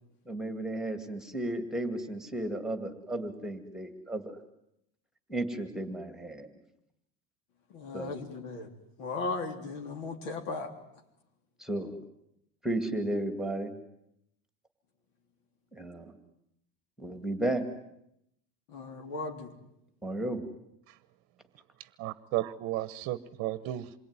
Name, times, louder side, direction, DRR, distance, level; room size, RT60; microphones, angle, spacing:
voice 1, 0.3-4.4 5.3-6.5 7.9-8.1 11.6-12.0 12.6-13.8 15.7-16.1 17.0-17.7 20.0-20.5, right 1 dB, ahead, 2.2 m, -34 dB
voice 2, 7.7-8.7 9.0-10.7 18.7-19.6, left 3 dB, 70° left, 3.8 m, -36 dB
voice 3, 21.8-23.9, right 14 dB, 40° right, 1.0 m, -34 dB
27.5 x 22.0 x 9.7 m
cardioid pair, 175°, 32 cm